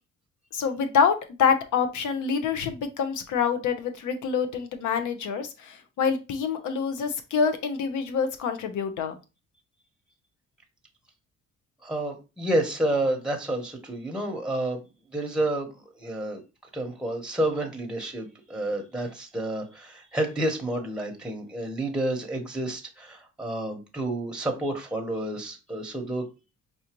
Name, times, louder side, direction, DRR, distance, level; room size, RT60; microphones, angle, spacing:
voice 1, 0.5-9.2, left 6 dB, 80° left, 0.8 m, -26 dB
voice 2, 11.8-14.8 15.1-15.7 16.0-16.4 16.7-26.2, right 1 dB, 5° right, 1.0 m, -29 dB
4.8 x 2.6 x 2.9 m
cardioid pair, 90°, 30 cm